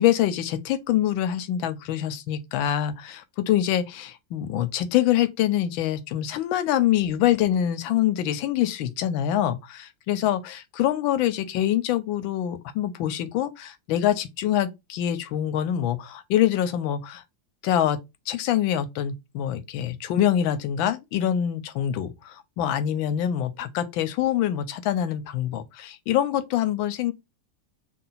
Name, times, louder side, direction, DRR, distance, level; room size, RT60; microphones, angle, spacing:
voice 1, 0.0-17.2 17.6-18.0 18.3-27.1, left 11 dB, 90° left, 1.4 m, -25 dB
3.8 x 2.3 x 3.9 m
omnidirectional pair, 2.1 m